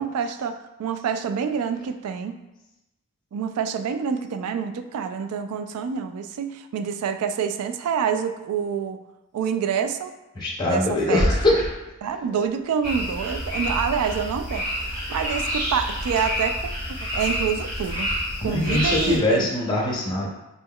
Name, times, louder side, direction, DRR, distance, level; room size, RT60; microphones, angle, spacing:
voice 1, 0.0-2.4 3.3-9.0 9.3-10.1 10.7-10.8 11.1-11.3 12.0-16.7 17.1-18.1 18.4-19.5, right 7 dB, 80° right, 10 dB, 0.3 m, -27 dB
voice 2, 10.4-11.7 18.4-20.3, left 1 dB, 20° left, -3 dB, 0.5 m, -22 dB
sound 1, 12.8-19.2, equal, 35° right, 1.3 m, -28 dB
4.0 x 3.5 x 2.2 m, 0.97 s
head